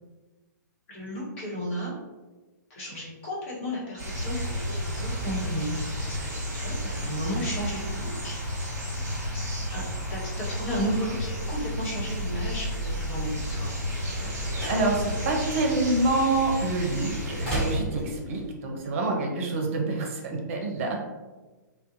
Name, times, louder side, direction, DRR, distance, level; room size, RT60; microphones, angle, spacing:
voice 1, 0.9-1.9 2.7-5.8 6.0-8.8 9.3-9.8 10.1-13.7 18.6-18.7, equal, 45° left, -6 dB, 1.1 m, -34 dB
sound 1, 4.0-17.8, equal, 20° right, 1.0 m, -32 dB
sound 2, 13.6-18.5, right 1 dB, 5° left, 1.4 m, -37 dB
voice 2, 14.0-21.0, right 2 dB, 45° right, 1 dB, 0.6 m, -27 dB
2.4 x 2.1 x 2.5 m, 1.2 s
figure-of-eight pair, 120°, 10 cm